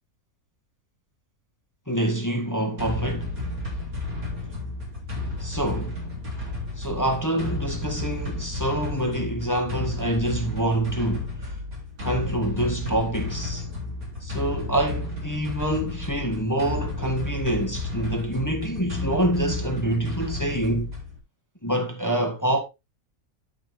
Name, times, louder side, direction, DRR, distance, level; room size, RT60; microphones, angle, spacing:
voice 1, 1.9-3.4 5.4-6.0 6.8-11.6 12.0-13.6 14.2-20.9 21.6-22.6, right 1 dB, 10° left, 1.5 m, -26 dB
sound 1, 2.8-21.2, left 2 dB, 65° right, 3.9 m, -32 dB
11.5 x 5.7 x 3.5 m
omnidirectional pair, 1.6 m